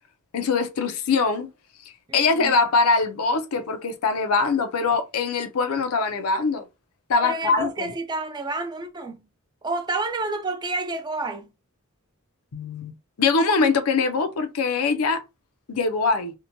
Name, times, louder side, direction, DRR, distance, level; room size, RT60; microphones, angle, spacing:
voice 1, 0.3-1.5 2.1-6.6 7.1-7.9 12.5-12.9 13.2-15.2 15.7-16.3, left 4 dB, 90° left, 0.5 m, -22 dB
voice 2, 2.1-2.5 7.2-9.2 9.6-11.5, right 2 dB, 20° right, 0.4 m, -29 dB
2.8 x 2.1 x 2.6 m
head